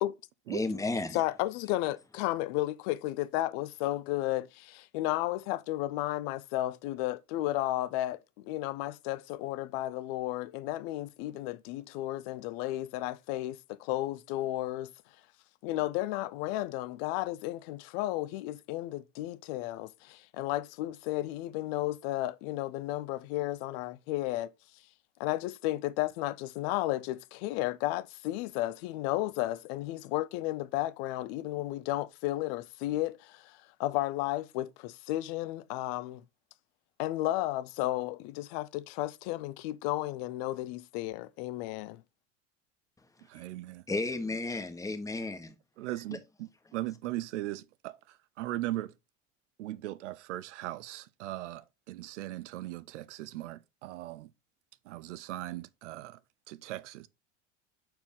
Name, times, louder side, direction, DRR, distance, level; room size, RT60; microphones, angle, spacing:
voice 1, 0.5-1.2 43.9-45.4, left 3 dB, 10° left, 1.2 m, -32 dB
voice 2, 1.1-14.9 15.6-24.5 25.2-36.2 37.0-42.0, left 16 dB, 55° left, 0.7 m, -33 dB
voice 3, 43.3-43.8 45.8-48.9 49.6-54.3 54.9-56.2 56.5-57.1, right 15 dB, 65° right, 0.7 m, -39 dB
6.9 x 4.5 x 3.7 m
hypercardioid pair, 80°, 38 cm